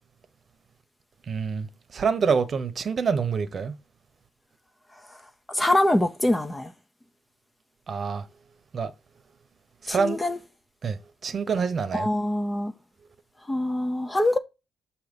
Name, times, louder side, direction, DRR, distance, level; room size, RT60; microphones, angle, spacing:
voice 1, 1.3-1.7 1.9-3.8 7.9-8.3 8.7-8.9 9.8-10.2 10.8-11.0 11.2-12.1, right 5 dB, 45° right, 0.9 m, -26 dB
voice 2, 5.5-6.7 9.9-10.4 11.9-12.7 13.5-14.4, left 1 dB, 15° left, 0.7 m, -24 dB
7.7 x 2.9 x 5.3 m
cardioid pair, 90°, 0 cm